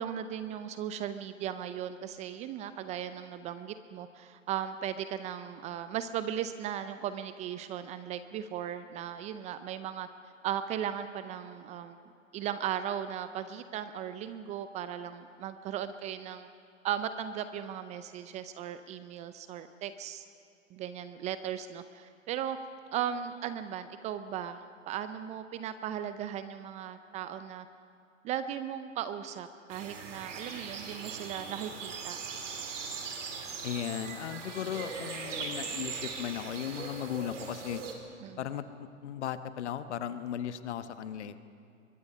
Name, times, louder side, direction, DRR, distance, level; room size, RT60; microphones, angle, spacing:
voice 1, 0.0-10.1 10.4-12.0 12.3-16.5 16.8-20.2 20.7-22.6 22.9-27.7 28.2-32.2 38.2-38.4, right 9 dB, 20° right, 11 dB, 0.5 m, -37 dB
sound 1, 29.7-37.9, right 5 dB, 65° right, 3.6 m, -40 dB
voice 2, 33.6-37.8 38.4-41.4, left 10 dB, 60° left, 11 dB, 1.3 m, -36 dB
23.5 x 22.0 x 5.5 m, 2.5 s
hypercardioid pair, 115°, 39 cm